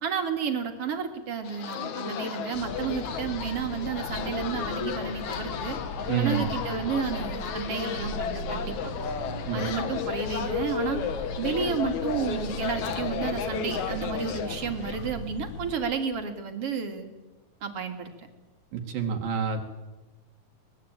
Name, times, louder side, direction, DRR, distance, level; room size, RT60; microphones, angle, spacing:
voice 1, 0.0-5.8 6.2-8.9 9.5-11.0 11.4-17.1 17.6-18.3, right 6 dB, 45° right, 6 dB, 2.9 m, -31 dB
sound 1, 1.4-15.1, left 7 dB, 60° left, 2.6 m, -33 dB
sound 2, 2.5-15.8, left 1 dB, 85° left, 5.1 m, -39 dB
voice 2, 6.1-6.5 9.5-9.6 18.7-19.6, right 7 dB, 70° right, 3 dB, 3.4 m, -28 dB
23.5 x 20.0 x 8.8 m, 1.1 s
omnidirectional pair, 4.2 m